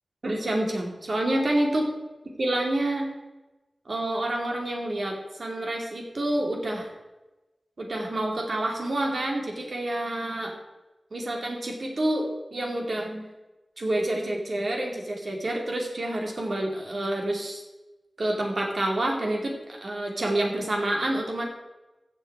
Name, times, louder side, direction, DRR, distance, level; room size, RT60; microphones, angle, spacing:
voice 1, 0.2-1.9 2.4-3.1 3.9-6.9 7.8-10.6 11.1-13.3 13.8-17.6 18.2-21.5, right 1 dB, 55° right, 1 dB, 2.6 m, -28 dB
14.5 x 7.2 x 4.7 m, 1.1 s
wide cardioid pair, 100°, 0 cm